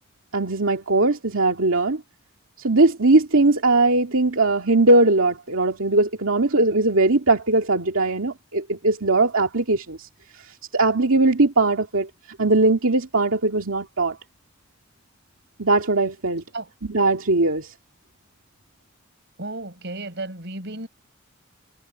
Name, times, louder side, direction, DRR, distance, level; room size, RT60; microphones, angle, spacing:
voice 1, 0.3-2.0 2.6-10.1 10.7-12.1 12.4-14.2 15.6-16.4 16.9-17.7, right 2 dB, 80° right, 2.3 m, -20 dB
voice 2, 19.4-20.9, right 2 dB, 55° right, 5.4 m, -33 dB
head